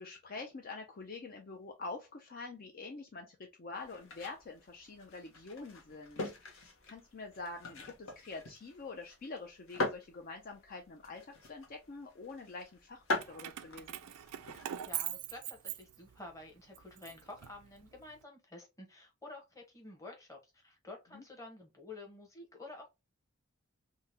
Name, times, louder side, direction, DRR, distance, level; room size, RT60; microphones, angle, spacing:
voice 1, 0.0-14.0 21.1-21.2, left 3 dB, 40° left, 0.4 m, -46 dB
sound 1, 3.7-15.1, left 2 dB, 60° left, 1.0 m, -43 dB
Keys jangling, 13.1-16.3 16.7-18.0, right 12 dB, 90° right, 0.4 m, -42 dB
voice 2, 14.8-22.9, left 2 dB, 15° left, 1.0 m, -50 dB
3.8 x 2.1 x 2.7 m
head